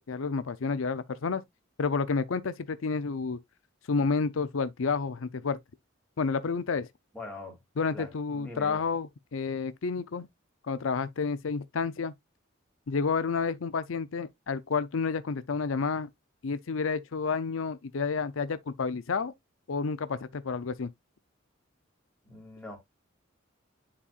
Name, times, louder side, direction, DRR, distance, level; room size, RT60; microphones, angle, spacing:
voice 1, 0.0-1.4 1.8-3.4 3.9-5.6 6.2-6.9 7.8-10.3 10.7-12.1 12.9-16.1 16.4-19.3 19.7-20.9, left 5 dB, 75° left, 0.6 m, -30 dB
voice 2, 7.1-7.6 7.9-8.1 8.3-8.8 22.2-22.8, left 2 dB, 5° left, 2.8 m, -42 dB
9.8 x 4.2 x 2.4 m
head